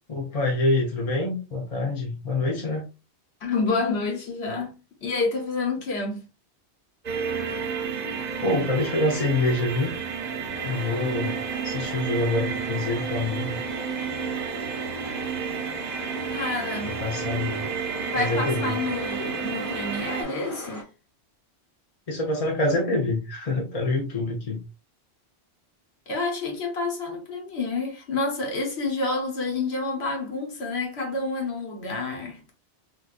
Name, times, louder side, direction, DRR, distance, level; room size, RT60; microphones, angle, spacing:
voice 1, 0.1-2.8 8.4-9.9 10.6-11.4 11.6-13.6 16.8-17.7 18.2-18.8 22.1-24.6, left 2 dB, 40° left, 0.7 m, -26 dB
voice 2, 3.4-6.3 16.3-17.0 18.1-20.8 26.1-32.5, left 3 dB, 70° left, 1.3 m, -29 dB
sound 1, 7.0-20.2, right 6 dB, 45° right, 0.7 m, -31 dB
sound 2, 10.5-20.8, left 2 dB, 20° left, 1.0 m, -41 dB
3.6 x 2.6 x 2.4 m
omnidirectional pair, 1.1 m